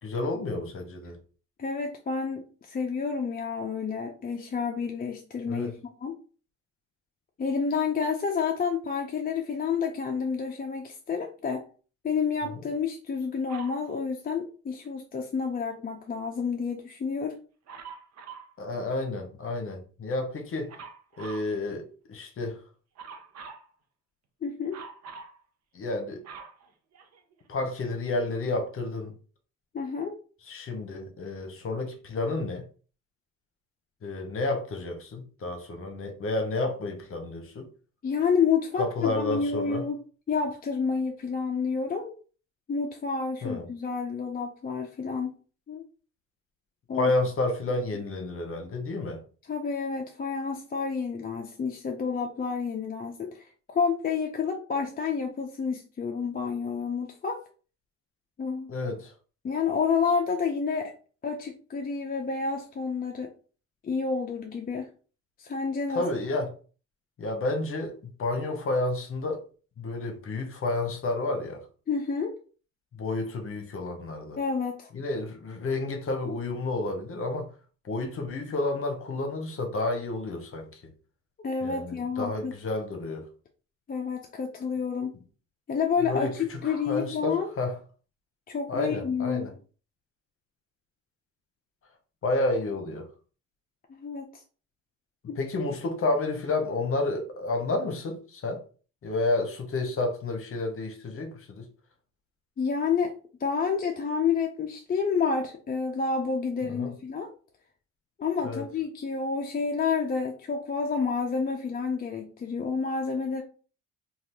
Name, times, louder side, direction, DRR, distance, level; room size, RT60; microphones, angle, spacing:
voice 1, 0.0-1.2 5.5-5.7 18.6-20.7 21.2-22.6 25.7-26.2 27.5-29.1 30.5-32.6 34.0-37.7 38.8-39.9 43.4-43.6 46.9-49.2 58.7-59.1 65.9-66.5 67.2-69.4 69.8-71.7 72.9-74.4 74.9-77.5 77.8-80.8 81.6-83.3 86.0-87.7 88.7-89.5 92.2-93.1 95.4-98.6 99.0-101.6 106.7-106.9 108.4-108.6, left 2 dB, 45° left, 0.9 m, -30 dB
voice 2, 1.6-6.2 7.4-11.7 12.0-17.3 24.4-24.8 29.7-30.2 38.0-40.0 40.3-42.2 42.7-45.3 45.7-45.8 46.9-47.1 49.5-57.4 58.4-58.7 59.4-60.9 61.2-63.3 63.8-64.9 65.4-66.1 71.9-72.3 74.4-74.9 81.4-82.6 83.9-85.1 85.7-87.5 88.5-89.5 93.9-94.4 95.3-95.4 102.6-103.1 103.4-107.3 108.2-113.4, left 5 dB, 30° left, 0.5 m, -29 dB
Dog, 13.5-13.8 17.7-18.5 20.7-21.5 23.0-23.7 24.7-25.4 25.9-27.4 28.1-28.2, right 5 dB, 60° right, 0.7 m, -44 dB
2.7 x 2.4 x 3.4 m
cardioid pair, 90°, 30 cm